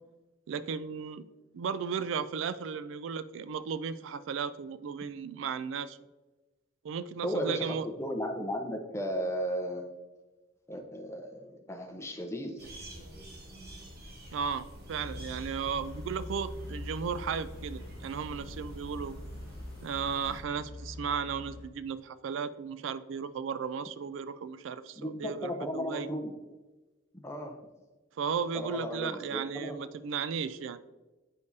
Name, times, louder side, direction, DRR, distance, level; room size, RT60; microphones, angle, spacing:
voice 1, 0.5-1.2 1.5-6.0 6.8-7.9 14.3-19.2 19.8-26.1 28.2-30.8, right 6 dB, 70° right, 15 dB, 0.3 m, -35 dB
voice 2, 7.2-9.9 10.7-12.7 25.0-26.3 27.2-27.6 28.5-29.8, equal, 15° left, 2 dB, 0.7 m, -35 dB
sound 1, 12.6-20.4, equal, 50° right, 1.3 m, -47 dB
sound 2, 14.9-21.7, left 2 dB, 65° left, 0.6 m, -44 dB
7.9 x 5.2 x 2.7 m, 1.2 s
head